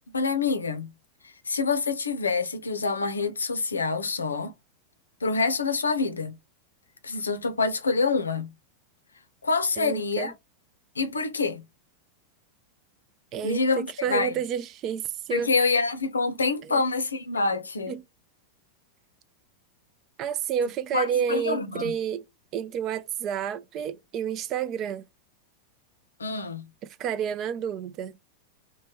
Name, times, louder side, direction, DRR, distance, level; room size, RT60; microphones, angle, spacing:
voice 1, 0.1-0.9 1.2-4.5 5.2-6.3 7.0-8.5 9.4-10.3 11.0-11.6 13.4-14.4 15.3-18.0 20.9-21.9 26.2-26.6, left 4 dB, 75° left, 0.5 m, -26 dB
voice 2, 9.8-10.3 13.3-15.5 16.7-16.8 17.9-18.0 20.2-22.2 22.5-25.1 26.8-28.2, right 8 dB, 35° right, 0.3 m, -30 dB
3.0 x 2.1 x 3.1 m
figure-of-eight pair, 90°, 0 cm